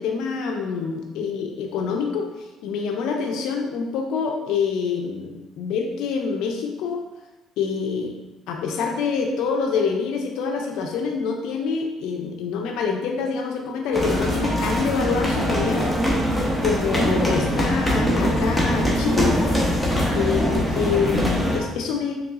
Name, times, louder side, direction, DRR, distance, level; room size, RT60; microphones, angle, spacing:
voice 1, 0.0-7.0 7.6-8.1 8.5-15.9 16.6-19.4 20.2-22.1, left 5 dB, 80° left, 2 dB, 0.4 m, -26 dB
sound 1, 13.9-21.6, equal, ahead, 0.8 m, -22 dB
3.8 x 3.2 x 2.3 m, 1.0 s
cardioid pair, 115°, 0 cm